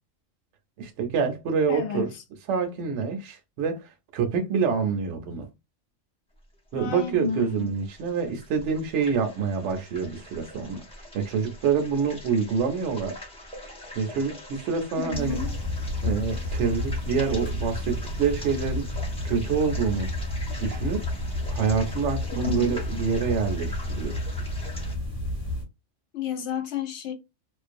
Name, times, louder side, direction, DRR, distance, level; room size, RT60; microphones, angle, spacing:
voice 1, 0.8-2.1 2.5-5.5 6.7-13.2 14.0-15.4 16.0-18.9 19.2-20.1 20.6-21.0 21.5-24.2, right 6 dB, 70° right, 0.8 m, -27 dB
voice 2, 1.7-2.2 6.8-7.7 15.0-15.5 22.3-22.8 26.1-27.1, left 6 dB, 65° left, 0.8 m, -31 dB
sound 1, 6.8-25.0, left 1 dB, 5° left, 0.5 m, -43 dB
sound 2, 15.1-25.6, left 1 dB, 30° left, 1.1 m, -31 dB
2.4 x 2.1 x 2.5 m
omnidirectional pair, 1.3 m